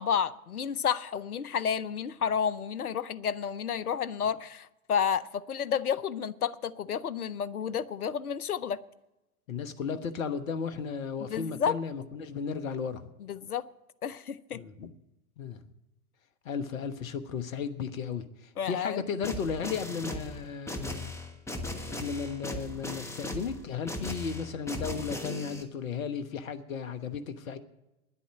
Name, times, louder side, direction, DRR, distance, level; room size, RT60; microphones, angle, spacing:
voice 1, 0.0-8.8 11.3-11.8 13.3-13.6 14.0-14.6 18.6-19.0, left 7 dB, 85° left, 0.7 m, -31 dB
voice 2, 9.5-13.1 14.5-14.9 15.4-15.6 16.4-21.1 21.6-27.6, left 6 dB, 65° left, 1.2 m, -35 dB
sound 1, 19.2-25.6, left 1 dB, 5° left, 1.2 m, -38 dB
10.5 x 8.4 x 9.8 m
figure-of-eight pair, 95°, 43 cm